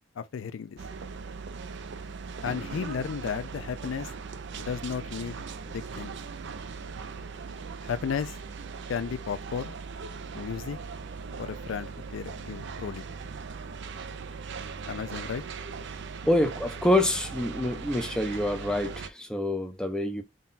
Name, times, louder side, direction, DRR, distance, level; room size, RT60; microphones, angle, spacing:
voice 1, 0.2-0.8 2.4-4.1 4.6-6.2 7.8-8.4 8.9-9.7 10.3-10.8 11.4-13.1 14.9-15.4, left 6 dB, 70° left, 0.4 m, -34 dB
sound 1, 0.8-19.1, right 5 dB, 60° right, 0.5 m, -39 dB
voice 2, 16.3-20.2, left 1 dB, 5° left, 0.6 m, -26 dB
3.8 x 2.3 x 3.9 m
head